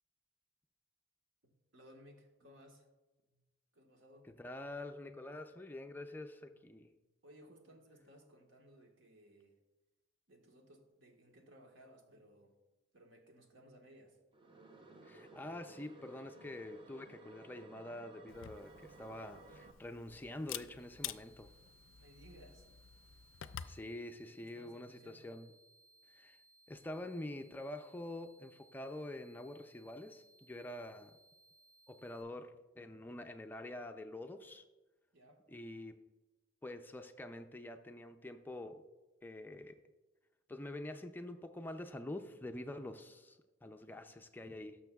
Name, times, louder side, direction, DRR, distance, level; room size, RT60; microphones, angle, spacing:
voice 1, 1.7-2.9 3.3-3.4 3.7-4.3 7.2-9.6 10.3-12.5 12.9-14.2 22.0-22.7 24.2-25.3 35.1-35.4, equal, 75° right, 2 dB, 1.4 m, -60 dB
voice 2, 4.4-6.9 15.0-21.5 23.7-25.5 26.1-26.4 26.7-31.2 31.9-34.6 35.5-36.0 36.6-38.8 39.2-39.8 40.5-44.8, left 1 dB, 10° left, 6 dB, 0.4 m, -46 dB
sound 1, 14.3-19.7, right 3 dB, 25° right, 0.7 m, -57 dB
Camera, 18.3-23.8, left 11 dB, 90° left, 0.4 m, -49 dB
sound 2, 20.8-32.2, right 2 dB, 60° right, 2.4 m, -67 dB
18.0 x 6.4 x 2.3 m, 1.1 s
head